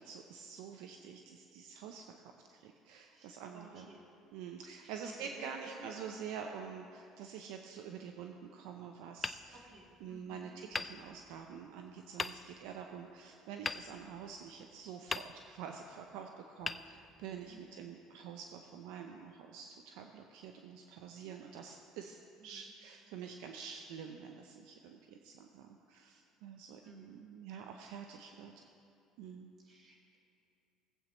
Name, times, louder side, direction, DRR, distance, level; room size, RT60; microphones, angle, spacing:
voice 1, 0.0-3.9 4.3-9.6 10.0-28.5 29.2-29.5, right 7 dB, 80° right, 4 dB, 0.6 m, -47 dB
voice 2, 3.1-4.1 4.8-5.9 9.6-10.6 17.5-17.9 22.4-22.7 26.8-27.2 29.6-30.2, right 2 dB, 45° right, -3 dB, 2.5 m, -55 dB
Hammer, 9.2-10.2 10.7-11.6 12.2-12.8 13.6-14.6 15.1-15.8 16.6-17.6, left 3 dB, 20° left, 0.4 m, -42 dB
18.0 x 8.0 x 3.1 m, 2.6 s
supercardioid pair, 90°, 0 cm